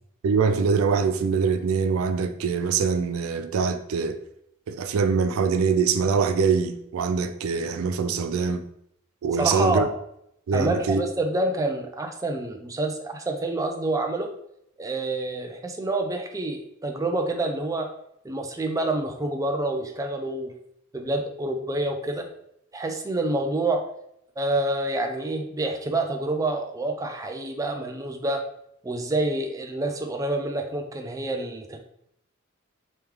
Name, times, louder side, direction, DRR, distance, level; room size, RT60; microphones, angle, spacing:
voice 1, 0.2-4.2 4.7-8.6 9.2-9.9 10.5-11.0, right 5 dB, 80° right, 0.4 m, -23 dB
voice 2, 9.3-9.9 10.5-14.3 14.8-17.9 18.2-20.5 20.9-22.3 22.7-23.8 24.4-28.4 28.8-31.8, right 2 dB, 15° right, 0.4 m, -27 dB
3.1 x 3.1 x 3.5 m
head